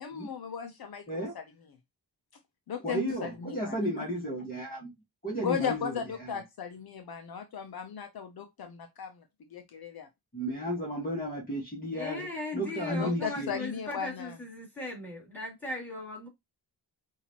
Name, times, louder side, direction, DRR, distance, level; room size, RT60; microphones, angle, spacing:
voice 1, 0.0-1.0 1.3-1.4 2.7-3.7 5.4-9.2 9.5-10.1 13.0-14.4, left 7 dB, 65° left, 0.8 m, -36 dB
voice 2, 1.1-1.4 2.8-4.9 5.2-6.4 10.3-13.5, equal, 20° left, 1.6 m, -34 dB
voice 3, 11.9-16.3, left 2 dB, 5° left, 2.8 m, -38 dB
5.6 x 2.7 x 3.0 m
wide cardioid pair, 155°, 40 cm